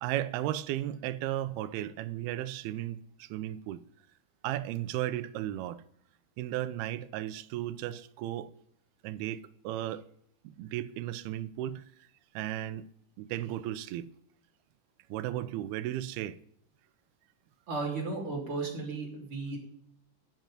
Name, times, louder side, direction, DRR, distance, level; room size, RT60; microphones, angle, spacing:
voice 1, 0.0-3.8 4.4-5.8 6.4-8.5 9.0-10.0 10.4-12.1 12.3-12.9 13.2-14.1 15.1-16.4, right 13 dB, 90° right, 2.6 m, -35 dB
voice 2, 17.7-19.6, right 3 dB, 35° right, 3.8 m, -34 dB
13.0 x 6.1 x 9.3 m
omnidirectional pair, 4.4 m